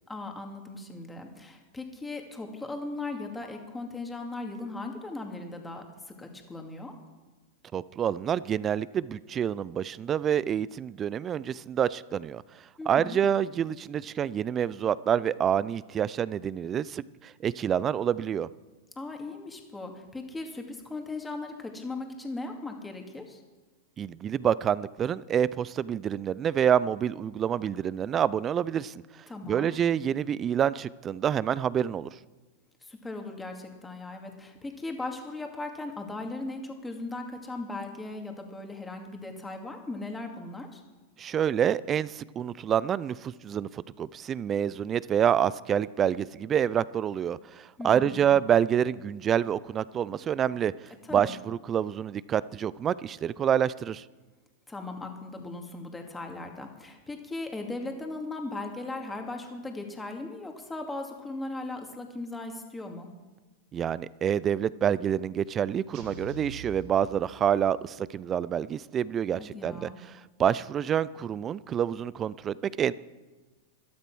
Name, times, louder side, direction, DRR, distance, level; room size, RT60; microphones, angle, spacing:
voice 1, 0.1-6.9 12.8-13.2 19.0-23.4 29.3-29.7 32.8-40.8 47.8-48.4 51.1-51.3 54.7-63.1 69.4-70.0, left 2 dB, 10° left, 3 dB, 2.3 m, -38 dB
voice 2, 7.7-12.4 12.9-18.5 24.0-29.0 29.5-32.1 41.2-50.7 51.1-54.0 63.7-69.9 70.4-72.9, right 9 dB, 30° right, 20 dB, 0.4 m, -27 dB
sound 1, 65.9-67.8, right 4 dB, 55° right, 3.6 m, -44 dB
13.0 x 12.0 x 6.2 m, 1.2 s
hypercardioid pair, 115°, 0 cm